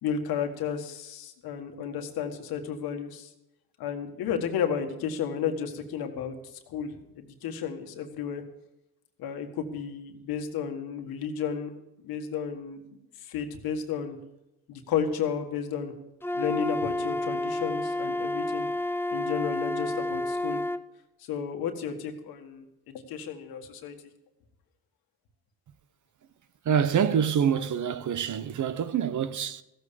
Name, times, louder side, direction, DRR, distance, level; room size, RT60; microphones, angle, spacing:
voice 1, 0.0-3.3 3.8-6.3 6.7-8.4 9.2-11.7 12.0-12.8 13.2-14.2 14.7-15.9 16.3-18.7 19.1-20.6 21.3-23.9, left 7 dB, 85° left, 1.7 m, -32 dB
Wind instrument woodwind instrument, 16.2-20.8, left 1 dB, 5° left, 0.5 m, -30 dB
voice 2, 26.6-29.6, right 8 dB, 55° right, 1.0 m, -26 dB
15.0 x 7.9 x 6.9 m
cardioid pair, 80°, 35 cm